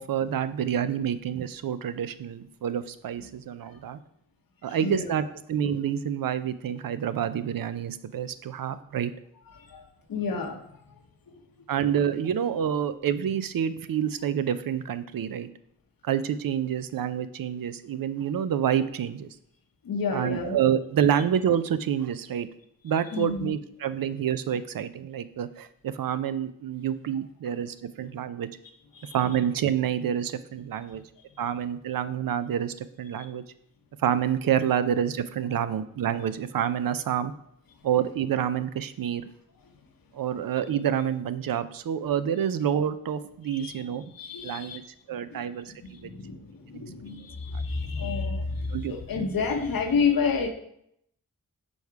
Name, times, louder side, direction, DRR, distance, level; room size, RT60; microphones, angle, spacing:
voice 1, 0.0-4.0 4.6-9.1 11.7-15.5 16.0-19.3 20.1-22.5 22.8-28.5 29.1-31.0 31.4-33.4 34.0-37.3 37.8-39.2 40.1-44.1 44.4-44.8 45.1-45.7 46.0-46.1 48.0-48.1 48.7-48.9, right 9 dB, 80° right, 13 dB, 0.5 m, -28 dB
voice 2, 4.7-5.1 9.5-9.8 10.1-10.6 19.8-20.6 23.1-23.5 28.9-29.2 33.2-33.3 43.5-43.7 44.1-44.8 45.3-45.4 45.9-50.5, left 5 dB, 85° left, 4 dB, 0.9 m, -29 dB
6.2 x 3.6 x 4.6 m, 0.73 s
cardioid pair, 55°, 34 cm